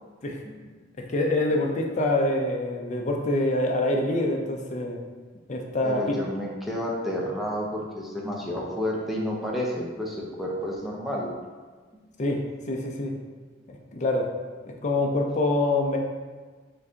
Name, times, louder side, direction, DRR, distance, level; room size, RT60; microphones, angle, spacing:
voice 1, 1.0-5.0 5.5-6.2 12.2-13.2 13.9-14.3 14.6-16.0, left 2 dB, 40° left, 1 dB, 0.5 m, -25 dB
voice 2, 5.8-11.3, equal, ahead, -3 dB, 0.6 m, -30 dB
4.6 x 2.6 x 3.6 m, 1.4 s
head